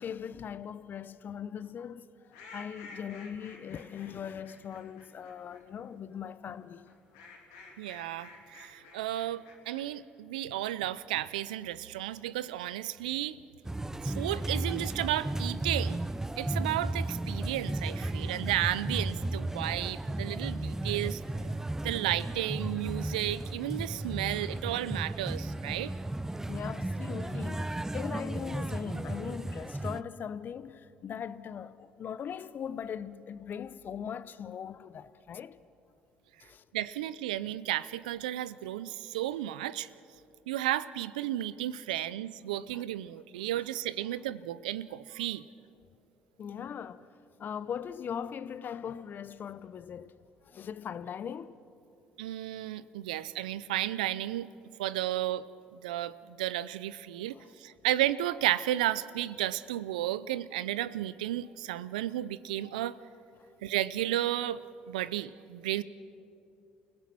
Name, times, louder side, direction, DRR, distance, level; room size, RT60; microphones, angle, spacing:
voice 1, 0.0-2.2 2.5-6.8 16.6-16.7 18.2-18.5 26.5-35.6 36.4-36.6 41.9-42.1 42.7-42.8 46.4-47.1 47.4-50.1 50.4-51.6 57.2-57.5, left 8 dB, 50° left, 0.8 m, -40 dB
sound 1, 2.3-5.6 6.8-9.8, left 3 dB, 85° left, 3.7 m, -51 dB
voice 2, 7.8-13.4 14.0-16.0 16.4-21.2 21.8-25.9 36.7-39.9 40.5-45.4 52.2-54.5 54.8-55.4 55.8-63.0 63.6-64.6 64.9-65.8, right 13 dB, 90° right, 0.5 m, -33 dB
sound 2, 13.6-30.0, right 1 dB, 10° right, 0.6 m, -34 dB
29.5 x 17.0 x 6.2 m
hypercardioid pair, 60°, 4 cm